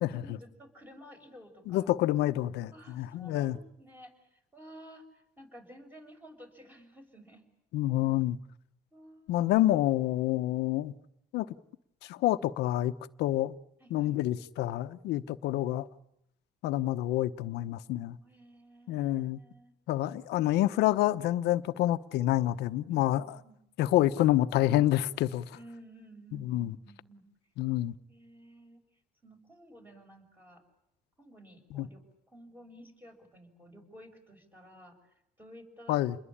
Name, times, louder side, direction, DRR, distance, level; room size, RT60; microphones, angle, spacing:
voice 1, 0.1-1.9 2.7-7.4 8.9-9.5 13.8-14.2 18.2-19.7 22.9-23.6 25.5-27.2 27.8-28.8 29.2-30.6 31.2-32.0 32.3-36.0, equal, 10° right, 6.5 m, -53 dB
voice 2, 1.7-3.6 7.7-8.4 9.3-10.9 11.3-11.5 12.0-12.9 13.2-13.5 13.9-15.9 16.6-18.2 18.9-19.4 19.9-23.2 23.8-25.5 26.3-26.7 27.6-27.9 31.7-31.9 35.9-36.2, left 14 dB, 85° left, 1.0 m, -28 dB
28.5 x 21.5 x 8.7 m
cardioid pair, 110°, 17 cm